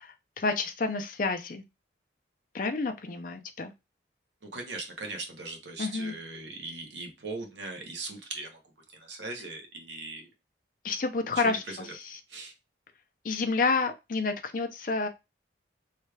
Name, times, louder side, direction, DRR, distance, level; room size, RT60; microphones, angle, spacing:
voice 1, 0.0-1.6 2.5-3.7 5.8-6.1 10.8-12.2 13.2-15.1, left 4 dB, 45° left, 0.5 m, -29 dB
voice 2, 4.4-8.6 8.9-10.3 11.4-11.8 12.3-12.5, right 3 dB, 75° right, 1.0 m, -39 dB
3.2 x 2.3 x 3.2 m
head